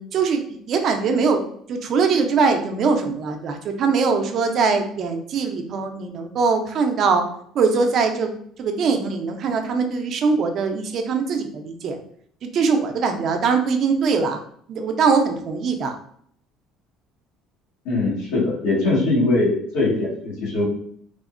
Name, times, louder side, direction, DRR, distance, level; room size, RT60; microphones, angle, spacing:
voice 1, 0.0-1.4 1.7-7.2 7.5-8.3 8.6-12.0 12.4-14.4 14.7-16.0, right 5 dB, 55° right, 5 dB, 0.5 m, -22 dB
voice 2, 17.8-20.6, left 2 dB, 90° left, -6 dB, 1.3 m, -21 dB
3.5 x 2.0 x 2.5 m, 0.64 s
cardioid pair, 105°, 0 cm